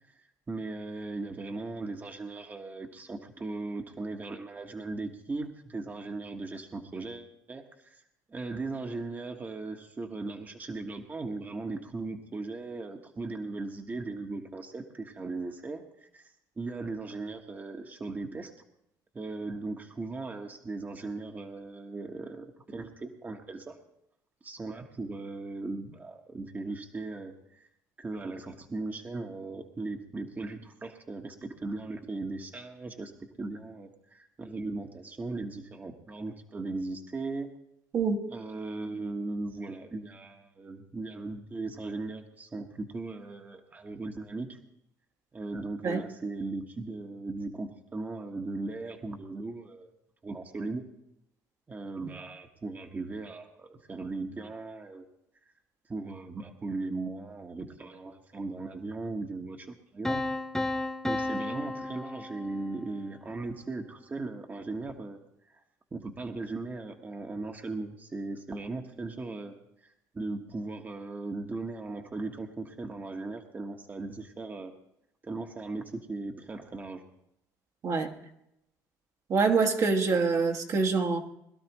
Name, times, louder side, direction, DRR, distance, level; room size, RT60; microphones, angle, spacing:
voice 1, 0.0-8.0 8.3-18.5 19.1-23.8 24.4-27.7 28.0-37.5 38.3-44.6 45.3-49.9 50.2-50.8 51.7-55.1 55.9-60.2 61.0-65.2 65.5-65.6 65.9-69.5 69.8-74.7 75.2-77.0, right 3 dB, 25° right, 3 dB, 1.4 m, -38 dB
Piano, 60.0-62.9, left 2 dB, 5° left, 0.8 m, -33 dB
voice 2, 79.3-81.2, right 4 dB, 50° right, 3 dB, 1.5 m, -25 dB
21.5 x 12.0 x 3.1 m, 0.79 s
supercardioid pair, 90°, 7 cm